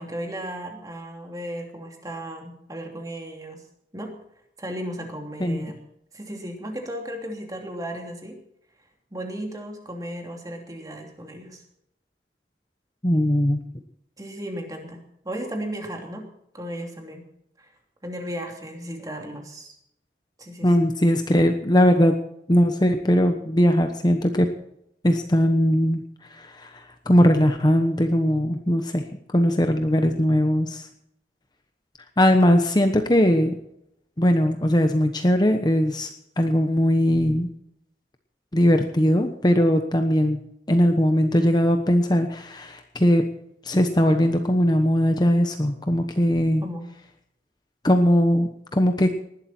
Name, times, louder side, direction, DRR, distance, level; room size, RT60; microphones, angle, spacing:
voice 1, 0.0-3.6 3.9-4.1 4.6-5.8 6.1-8.4 9.1-11.6 14.2-16.3 16.5-17.2 17.6-17.7 18.0-19.7 20.4-20.8 46.6-46.9, equal, 20° right, 2 dB, 3.0 m, -35 dB
voice 2, 13.0-13.6 20.6-22.1 22.5-24.5 25.0-26.0 26.3-29.0 29.3-30.9 32.2-33.5 34.2-36.1 36.4-37.5 38.5-40.4 40.7-43.2 43.6-46.6 47.8-49.2, equal, 25° left, 6 dB, 1.1 m, -20 dB
19.5 x 12.0 x 4.4 m, 0.76 s
head